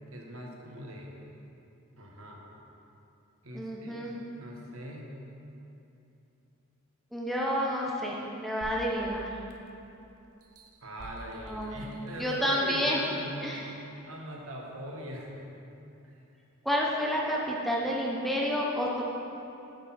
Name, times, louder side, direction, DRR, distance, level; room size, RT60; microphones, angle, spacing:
voice 1, 0.1-1.1 2.0-2.4 3.4-4.0 4.4-5.1 10.8-13.8 14.1-15.4, equal, 60° right, -1 dB, 1.3 m, -41 dB
voice 2, 3.5-4.2 7.1-9.3 11.4-11.8 12.2-13.0 13.4-13.7 16.6-19.0, equal, ahead, -3 dB, 0.6 m, -30 dB
sound 1, 8.6-9.9 10.4-12.5 13.1-13.2, right 1 dB, 80° right, 0.7 m, -48 dB
9.9 x 6.1 x 4.2 m, 2.9 s
head